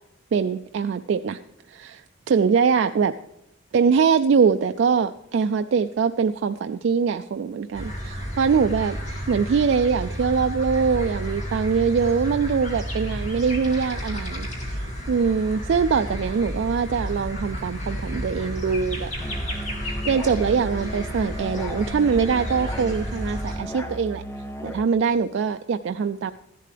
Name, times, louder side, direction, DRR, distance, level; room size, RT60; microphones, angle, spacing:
voice 1, 0.3-1.4 1.7-3.1 3.7-9.0 9.3-19.1 19.8-24.2 24.6-26.3, right 6 dB, 65° right, 8 dB, 0.3 m, -23 dB
sound 1, 7.7-23.6, equal, 35° left, 2.3 m, -32 dB
Musical instrument, 19.2-24.9, equal, 15° left, 0.7 m, -35 dB
14.0 x 11.0 x 3.4 m, 0.86 s
head